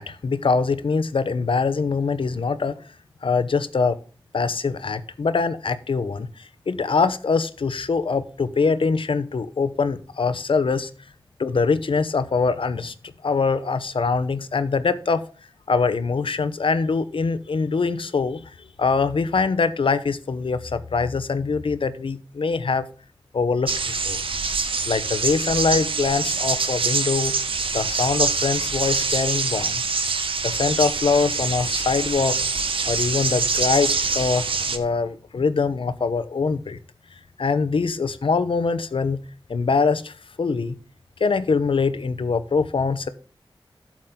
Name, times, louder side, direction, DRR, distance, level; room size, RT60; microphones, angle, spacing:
voice 1, 0.0-2.8 3.2-4.0 4.3-10.9 11.4-15.2 15.7-22.9 23.3-24.2 24.9-27.3 27.7-29.8 30.4-32.4 32.8-36.8 37.4-39.2 39.5-40.8 41.2-43.1, left 4 dB, 75° left, 12 dB, 0.9 m, -23 dB
sound 1, 23.7-34.8, right 4 dB, 80° right, 1.1 m, -25 dB
12.0 x 7.4 x 3.8 m, 0.39 s
wide cardioid pair, 90°, 9 cm